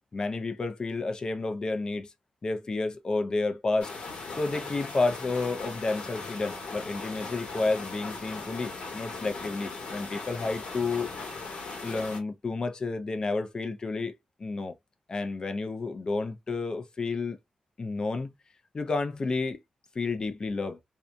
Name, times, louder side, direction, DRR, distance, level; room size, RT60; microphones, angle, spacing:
voice 1, 0.1-2.1 2.4-3.9 4.3-11.1 11.8-14.1 14.4-14.7 15.1-17.4 17.8-18.3 18.7-19.6 20.0-20.8, left 3 dB, 35° left, 0.4 m, -30 dB
sound 1, 3.8-12.2, left 3 dB, 75° left, 1.1 m, -39 dB
2.7 x 2.2 x 2.4 m
wide cardioid pair, 130°, 2 cm